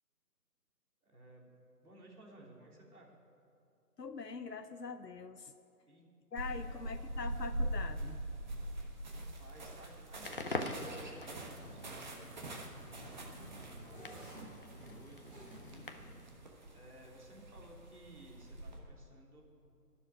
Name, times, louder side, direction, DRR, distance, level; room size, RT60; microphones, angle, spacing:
voice 1, 1.0-1.5 1.8-3.1 5.8-6.1 6.4-6.9 9.1-16.4 16.7-19.4, right 1 dB, 65° right, -1 dB, 3.2 m, -57 dB
voice 2, 4.0-5.5 6.3-8.2, left 5 dB, 85° left, 9 dB, 0.7 m, -43 dB
sound 1, 6.4-18.8, right 1 dB, 30° right, 1.2 m, -44 dB
sound 2, 9.8-10.0 10.6-16.2, right 1 dB, 10° right, 3.0 m, -54 dB
Crackle, 10.1-16.3, left 2 dB, 35° left, 0.7 m, -45 dB
11.5 x 7.3 x 9.8 m, 2.6 s
figure-of-eight pair, 150°, 48 cm